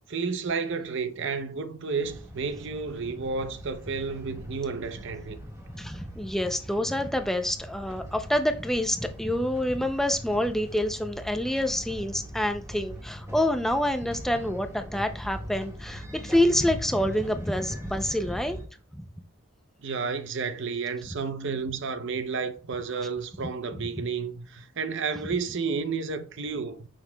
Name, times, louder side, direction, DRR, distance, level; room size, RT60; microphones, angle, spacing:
voice 1, 0.1-5.4 19.8-26.9, right 5 dB, 55° right, 0.7 m, -31 dB
sound 1, 2.0-18.6, equal, 15° right, 1.6 m, -41 dB
voice 2, 5.7-18.6 18.9-19.0 24.0-24.1, left 1 dB, ahead, 0.4 m, -27 dB
9.4 x 6.5 x 2.2 m
head